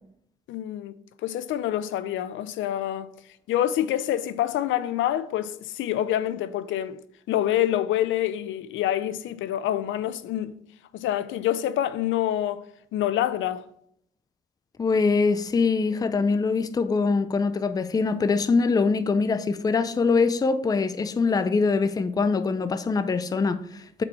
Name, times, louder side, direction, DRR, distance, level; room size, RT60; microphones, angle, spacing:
voice 1, 0.5-0.9 1.2-3.1 3.5-7.0 7.3-10.5 10.9-12.6 12.9-13.6, left 12 dB, 75° left, 0.5 m, -26 dB
voice 2, 14.8-24.0, left 4 dB, 20° left, 0.4 m, -23 dB
5.3 x 4.1 x 4.7 m
cardioid pair, 90°, 20 cm